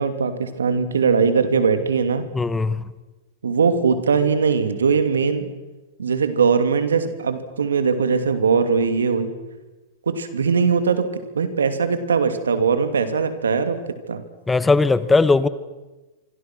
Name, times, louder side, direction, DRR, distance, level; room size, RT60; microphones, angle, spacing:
voice 1, 0.0-2.2 3.4-5.5 6.0-9.3 10.1-11.1 11.3-13.8 14.1-14.2, right 5 dB, 90° right, 9 dB, 2.8 m, -20 dB
voice 2, 2.3-2.8 14.5-15.5, left 3 dB, 10° left, 15 dB, 1.1 m, -18 dB
26.0 x 25.5 x 6.2 m, 1.1 s
hypercardioid pair, 115°, 0 cm